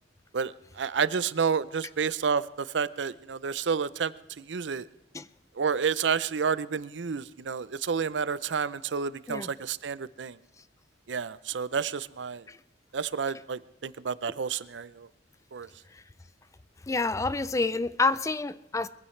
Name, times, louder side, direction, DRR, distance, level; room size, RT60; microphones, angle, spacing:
voice 1, 0.3-4.9 5.6-10.4 11.1-12.4 12.9-15.1 15.5-15.7, right 6 dB, 85° right, 17 dB, 0.6 m, -30 dB
voice 2, 16.9-18.9, left 3 dB, 15° left, 15 dB, 0.4 m, -28 dB
22.5 x 15.5 x 3.2 m, 0.87 s
head